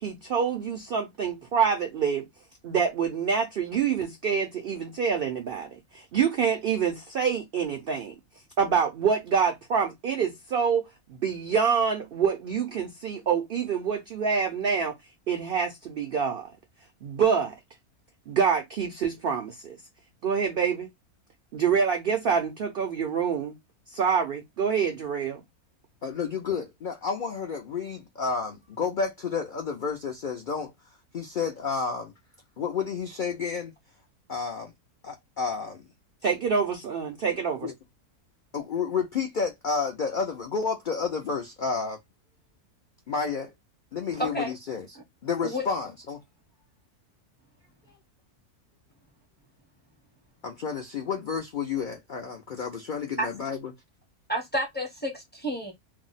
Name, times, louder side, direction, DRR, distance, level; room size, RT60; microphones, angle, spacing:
voice 1, 0.0-2.3 2.6-8.1 8.6-10.8 11.1-14.9 15.3-16.5 17.0-17.5 18.3-19.8 20.2-20.9 21.5-23.6 23.9-25.4 36.2-37.7, right 6 dB, 75° right, 0.5 m, -26 dB
voice 2, 26.0-30.7 31.1-32.1 32.6-33.7 34.3-34.7 35.0-35.8 37.6-37.7 38.5-42.0 43.1-43.5 43.9-46.2 50.4-53.7, left 5 dB, 85° left, 0.4 m, -30 dB
voice 3, 44.2-44.5 45.4-45.6 53.2-53.3 54.3-55.7, equal, 10° left, 0.4 m, -30 dB
2.7 x 2.0 x 3.8 m
omnidirectional pair, 1.6 m